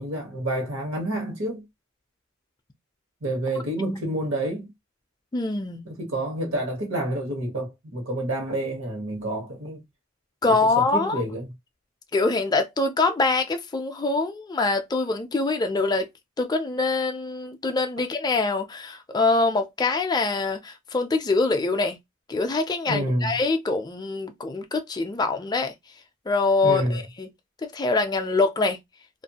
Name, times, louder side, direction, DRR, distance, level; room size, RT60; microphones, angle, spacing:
voice 1, 0.0-1.6 3.2-4.7 5.8-9.8 10.4-11.5 22.9-23.4 26.6-27.0, right 1 dB, 70° right, 1.2 m, -28 dB
voice 2, 5.3-5.9 10.4-11.2 12.1-16.1 16.4-22.0 22.3-25.7 26.3-27.3 27.6-28.8, left 3 dB, 20° left, 0.3 m, -24 dB
2.5 x 2.3 x 2.7 m
head